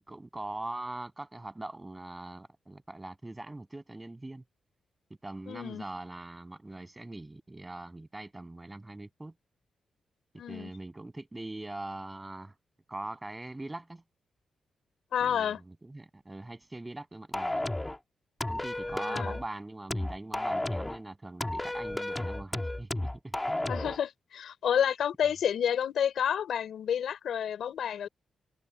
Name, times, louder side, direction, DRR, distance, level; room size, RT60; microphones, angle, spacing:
voice 1, 0.0-4.4 5.2-9.3 10.5-12.5 12.9-14.0 15.2-17.6 18.5-23.6, right 2 dB, 15° right, 7.7 m, -42 dB
voice 2, 5.5-5.8 10.4-10.7 15.1-15.6 19.0-19.4 23.7-28.1, left 9 dB, 75° left, 3.8 m, -30 dB
sound 1, 17.3-18.0 18.4-19.5 19.9-21.0 21.4-24.0, left 1 dB, 10° left, 1.8 m, -33 dB
cardioid pair, 100°, 0 cm